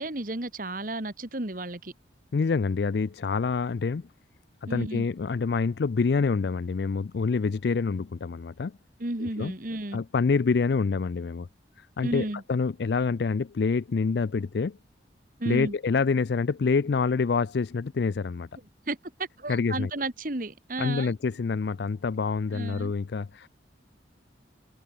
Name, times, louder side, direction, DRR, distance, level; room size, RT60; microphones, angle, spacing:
voice 1, 0.0-1.9 4.7-5.1 9.0-10.0 12.0-12.4 15.4-15.8 18.9-21.1 22.5-22.9, right 2 dB, 45° right, 1.9 m, -33 dB
voice 2, 2.3-4.0 4.6-8.7 9.2-9.5 9.9-11.5 11.8-14.8 15.5-18.5 19.5-19.9 20.8-23.5, left 4 dB, 65° left, 0.4 m, -26 dB
open air
head